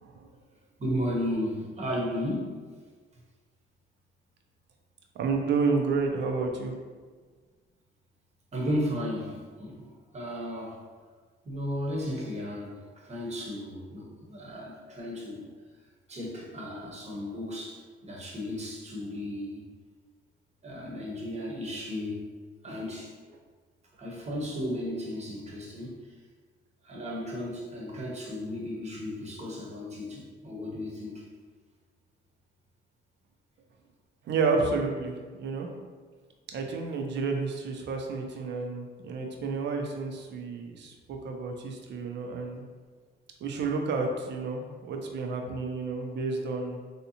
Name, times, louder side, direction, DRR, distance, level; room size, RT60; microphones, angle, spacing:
voice 1, 0.8-2.6 8.5-10.8 11.4-15.5 16.1-19.6 20.6-22.3 22.6-23.3 24.0-26.1 26.8-31.2, equal, 35° right, -3 dB, 0.9 m, -34 dB
voice 2, 5.2-6.8 34.3-35.7 36.5-42.6 43.4-46.8, right 4 dB, 65° right, 2 dB, 0.6 m, -30 dB
3.3 x 2.7 x 2.8 m, 1.5 s
cardioid pair, 90°, 20 cm